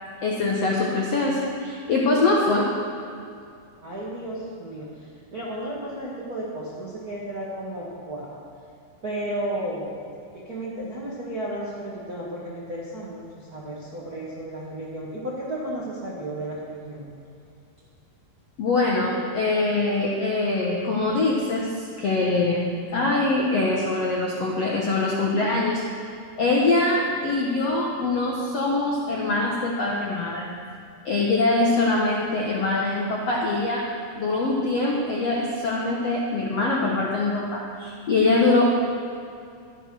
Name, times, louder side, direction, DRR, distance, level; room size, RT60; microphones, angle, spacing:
voice 1, 0.2-2.7 18.6-25.8 26.4-30.5 31.0-33.9 34.2-38.6, left 2 dB, 70° left, -3 dB, 1.5 m, -23 dB
voice 2, 3.8-8.3 9.0-9.9 10.3-17.1, right 1 dB, 45° right, -6 dB, 1.2 m, -33 dB
13.5 x 9.8 x 6.3 m, 2.4 s
omnidirectional pair, 4.7 m